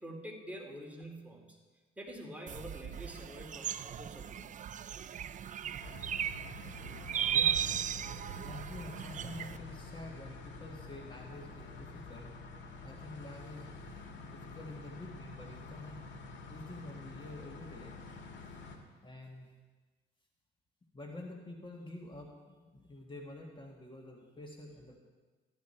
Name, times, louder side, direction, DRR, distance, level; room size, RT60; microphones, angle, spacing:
voice 1, 0.0-1.6 2.0-4.5 5.1-5.6, equal, 5° right, 0 dB, 2.5 m, -47 dB
sound 1, 2.5-9.6, right 9 dB, 40° right, 0.4 m, -36 dB
voice 2, 4.8-5.4 7.3-7.7 8.4-12.3 12.8-15.9 16.5-17.9 19.0-19.5 20.9-25.0, left 2 dB, 25° left, 0 dB, 1.8 m, -48 dB
sound 2, 5.8-18.8, left 3 dB, 65° left, 1.9 m, -48 dB
14.5 x 11.5 x 4.5 m, 1.3 s
cardioid pair, 90°, 20 cm